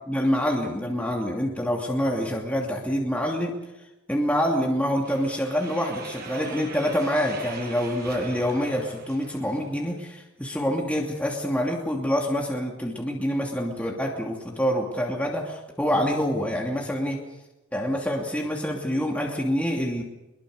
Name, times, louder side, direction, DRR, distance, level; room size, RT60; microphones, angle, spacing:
voice 1, 0.1-3.6 4.1-17.2 17.7-20.0, equal, 5° left, -1 dB, 2.8 m, -26 dB
sound 1, 5.0-9.9, right 3 dB, 45° right, 7.3 m, -41 dB
24.0 x 22.0 x 6.7 m, 1.0 s
head